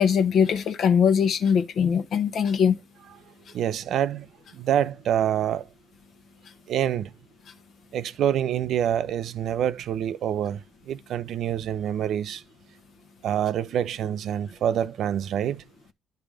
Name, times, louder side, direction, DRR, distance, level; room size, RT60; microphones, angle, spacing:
voice 1, 0.0-2.8, left 7 dB, 60° left, 0.9 m, -21 dB
voice 2, 3.5-4.3 4.5-5.7 6.7-7.1 7.9-12.4 13.2-15.6, right 10 dB, 65° right, 0.4 m, -26 dB
10.0 x 3.4 x 5.0 m
cardioid pair, 80°, 0 cm